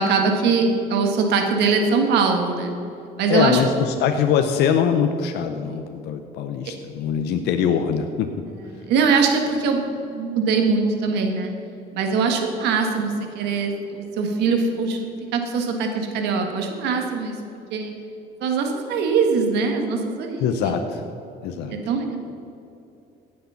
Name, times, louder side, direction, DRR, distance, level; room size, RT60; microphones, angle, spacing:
voice 1, 0.0-2.7 3.2-3.6 8.7-9.8 10.1-11.5 11.9-17.3 17.7-17.9 18.4-20.7 21.7-22.2, right 4 dB, 85° right, 3 dB, 1.8 m, -22 dB
voice 2, 3.3-8.3 20.4-21.0 21.4-21.7, left 7 dB, 85° left, 6 dB, 0.8 m, -22 dB
17.0 x 6.6 x 5.7 m, 2.8 s
cardioid pair, 110°, 17 cm